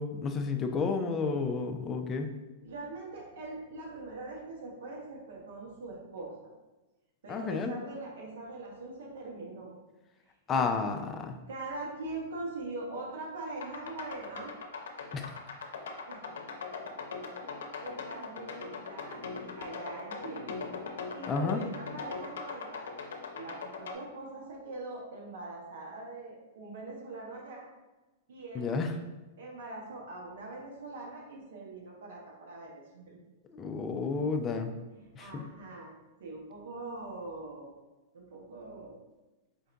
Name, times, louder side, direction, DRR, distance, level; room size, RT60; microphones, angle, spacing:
voice 1, 0.0-2.3 7.3-7.7 10.5-11.4 15.1-15.3 21.3-21.6 28.5-28.9 33.5-34.7 35.2-35.4, left 4 dB, 20° left, 5 dB, 0.4 m, -31 dB
voice 2, 2.6-6.3 7.2-9.7 10.5-11.0 11.5-14.5 16.1-16.6 17.4-20.6 21.1-22.9 23.3-27.7 28.3-28.7 29.4-33.2 34.9-35.9 36.2-37.7 38.1-39.0, right 2 dB, 80° right, -2 dB, 1.1 m, -42 dB
sound 1, 13.6-23.9, left 4 dB, 90° left, 0.6 m, -40 dB
4.5 x 2.6 x 3.4 m, 1.1 s
hypercardioid pair, 140°, 0 cm